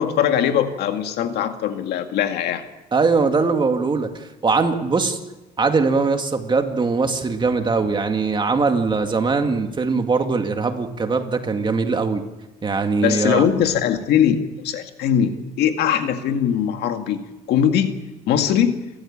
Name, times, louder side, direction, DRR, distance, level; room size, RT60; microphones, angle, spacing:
voice 1, 0.0-2.6 13.0-14.4 14.6-18.0 18.3-18.8, left 9 dB, 80° left, 6 dB, 2.1 m, -21 dB
voice 2, 2.9-4.1 4.4-5.2 5.6-12.2 12.6-13.4, right 4 dB, 25° right, 5 dB, 2.3 m, -21 dB
29.5 x 14.5 x 8.9 m, 1.1 s
cardioid pair, 110°, 17 cm